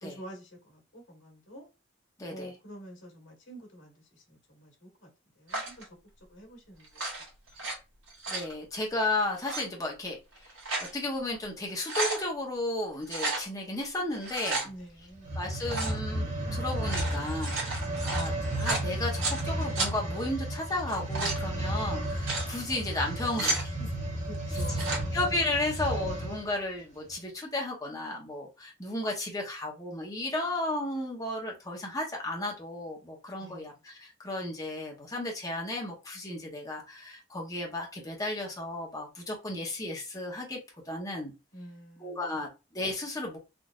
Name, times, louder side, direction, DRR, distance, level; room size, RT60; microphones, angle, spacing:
voice 1, 0.0-1.7 2.3-5.1 5.4-5.9 6.3-7.1 7.6-7.7 14.6-15.4 24.2-25.2 33.4-33.7 41.5-42.4, equal, 75° left, 1.6 m, -48 dB
voice 2, 2.2-2.5 8.3-10.2 10.8-14.6 15.4-17.6 18.0-18.3 18.6-23.9 25.1-40.6 40.9-41.3 42.0-43.4, left 2 dB, 15° left, 0.9 m, -34 dB
sound 1, 5.5-5.8 6.8-7.7 8.1-8.5 9.3-9.6 10.3-10.9 11.4-11.5 11.7-12.2 13.1-13.4 14.1-14.7 15.7-16.0 16.7-19.4 19.8-19.9 20.8-21.4 22.0-22.5 23.1-23.7 24.6-25.0, right 3 dB, 80° right, 1.4 m, -33 dB
sound 2, 15.2-26.5 27.1-27.2, right 1 dB, 35° right, 1.0 m, -33 dB
3.7 x 2.5 x 2.4 m
head